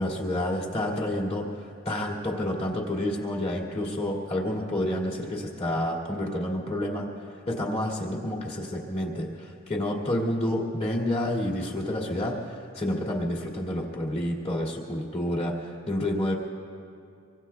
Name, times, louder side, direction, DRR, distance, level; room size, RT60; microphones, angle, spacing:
voice 1, 0.0-7.0 7.5-16.3, left 1 dB, 30° left, -2 dB, 2.4 m, -29 dB
26.0 x 24.0 x 2.3 m, 2.5 s
head